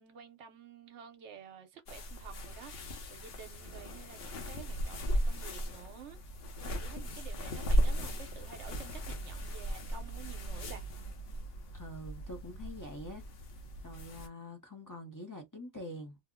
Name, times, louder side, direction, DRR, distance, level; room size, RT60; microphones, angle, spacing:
voice 1, 0.0-6.2 6.6-10.8, right 7 dB, 65° right, 1.0 m, -51 dB
sound 1, 1.9-14.3, equal, 55° left, 0.8 m, -36 dB
voice 2, 11.7-13.2 13.8-16.2, left 1 dB, 20° left, 0.6 m, -45 dB
2.7 x 2.0 x 3.6 m
omnidirectional pair, 1.4 m